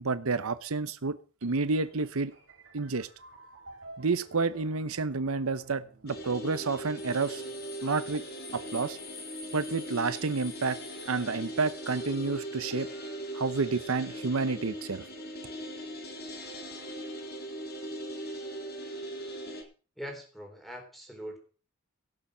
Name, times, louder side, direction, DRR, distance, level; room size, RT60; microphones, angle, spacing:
voice 1, 0.0-2.3 2.7-3.1 4.0-7.4 7.8-8.2 8.5-9.0 9.5-10.8 11.1-12.9 13.3-15.1, right 4 dB, 75° right, 13 dB, 0.8 m, -30 dB
sound 1, 1.4-8.1, right 1 dB, 55° right, 5.4 m, -53 dB
sound 2, 6.1-19.6, right 1 dB, 50° left, 4.2 m, -40 dB
sound 3, 7.0-12.3, left 5 dB, 80° left, 6.5 m, -49 dB
voice 2, 20.0-21.4, equal, ahead, 3 dB, 3.9 m, -42 dB
17.0 x 7.2 x 6.1 m, 0.38 s
head